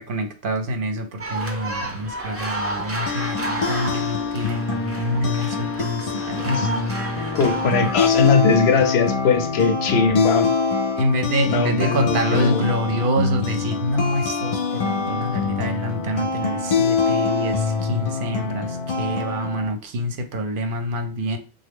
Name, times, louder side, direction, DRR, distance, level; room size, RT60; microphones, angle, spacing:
voice 1, 0.0-7.3 11.0-21.4, equal, 60° right, 0.7 m, -26 dB
sound 1, 1.2-8.3, right 1 dB, 20° right, 0.4 m, -31 dB
sound 2, 2.8-19.7, left 5 dB, 55° left, 0.4 m, -25 dB
voice 2, 6.1-6.7 7.3-10.5 11.5-12.6, left 5 dB, 85° left, 0.9 m, -20 dB
3.3 x 2.0 x 3.5 m
omnidirectional pair, 1.1 m